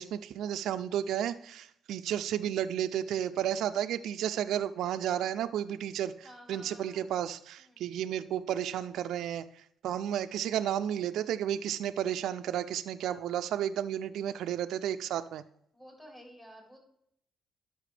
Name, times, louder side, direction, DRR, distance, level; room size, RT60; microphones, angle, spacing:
voice 1, 0.0-15.4, right 10 dB, 80° right, 9 dB, 0.3 m, -32 dB
voice 2, 6.2-7.1 7.6-7.8 9.8-10.0 15.7-16.8, equal, 15° left, -2 dB, 3.9 m, -52 dB
11.5 x 6.1 x 3.3 m, 0.73 s
cardioid pair, 90°, 0 cm